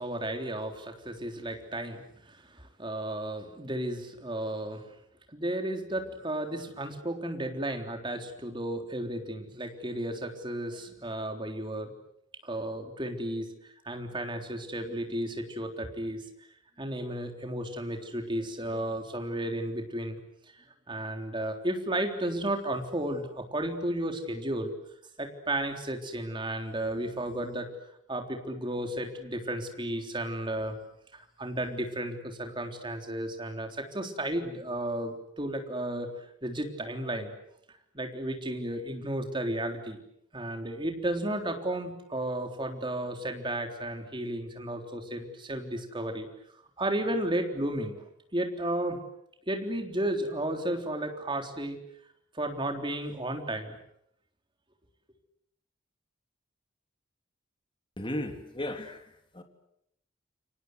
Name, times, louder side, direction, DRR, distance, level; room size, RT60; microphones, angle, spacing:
voice 1, 0.0-4.8 5.3-11.9 12.4-16.2 16.8-20.2 20.9-24.7 25.2-27.7 28.1-30.8 31.4-36.1 36.4-37.3 37.9-40.0 40.3-46.3 46.8-48.0 48.3-49.0 49.5-51.8 52.3-53.8, right 1 dB, 25° right, 5 dB, 3.7 m, -33 dB
voice 2, 58.0-59.0 59.3-59.4, left 1 dB, 25° left, 5 dB, 3.3 m, -34 dB
29.5 x 24.5 x 8.1 m, 0.76 s
head